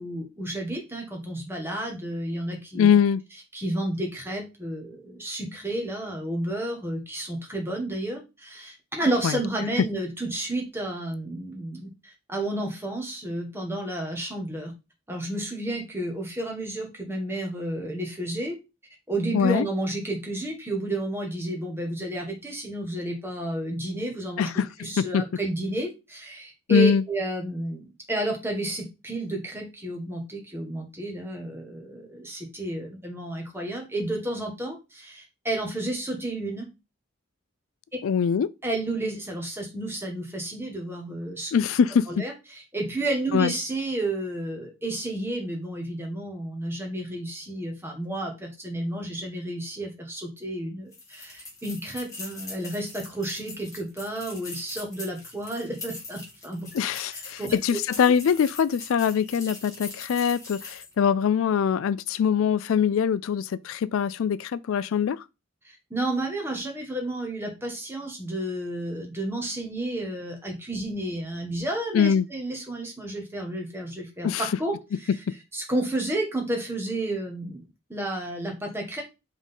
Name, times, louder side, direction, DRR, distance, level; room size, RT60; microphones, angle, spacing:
voice 1, 0.0-2.9 3.5-14.7 15.1-18.6 19.1-36.7 38.6-41.5 42.1-56.7 57.1-57.6 65.6-74.7 75.0-75.1 75.5-79.0, right 1 dB, 10° right, 1.6 m, -31 dB
voice 2, 2.7-3.2 9.2-9.4 19.3-19.7 24.4-24.7 25.0-25.2 26.7-27.0 38.0-38.5 41.5-42.2 43.3-43.5 56.7-65.2 71.9-72.3 74.2-74.5, left 7 dB, 80° left, 0.3 m, -23 dB
Key Chain Jingle Loop, 50.9-61.0, left 3 dB, 15° left, 1.9 m, -42 dB
5.1 x 3.8 x 5.4 m
head